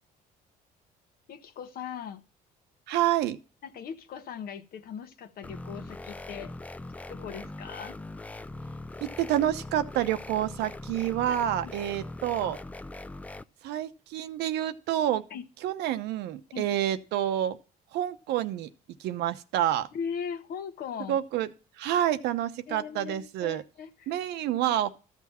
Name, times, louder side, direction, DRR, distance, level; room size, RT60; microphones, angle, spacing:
voice 1, 1.3-2.2 3.6-6.5 7.1-8.0 11.3-11.7 15.3-15.4 16.5-16.7 19.9-21.2 22.7-24.2, left 7 dB, 65° left, 1.2 m, -39 dB
voice 2, 2.9-3.4 9.0-12.6 13.6-15.2 15.6-17.6 17.9-18.7 19.0-19.9 21.1-21.5 21.8-23.6 24.1-24.9, right 12 dB, 85° right, 0.9 m, -28 dB
sound 1, 5.4-13.4, left 2 dB, 10° left, 0.4 m, -41 dB
13.5 x 6.2 x 4.3 m
cardioid pair, 110°, 17 cm